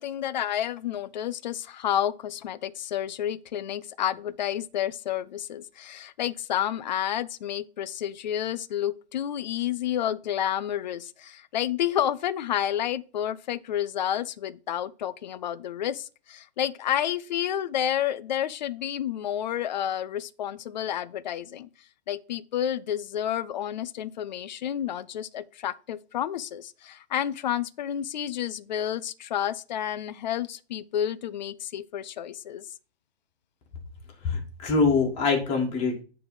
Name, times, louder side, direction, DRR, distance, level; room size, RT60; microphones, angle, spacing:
voice 1, 0.0-21.7 22.1-32.7, left 10 dB, 45° left, 0.5 m, -30 dB
voice 2, 34.2-36.0, left 4 dB, 20° left, 1.7 m, -24 dB
9.5 x 3.4 x 5.4 m
hypercardioid pair, 140°, 32 cm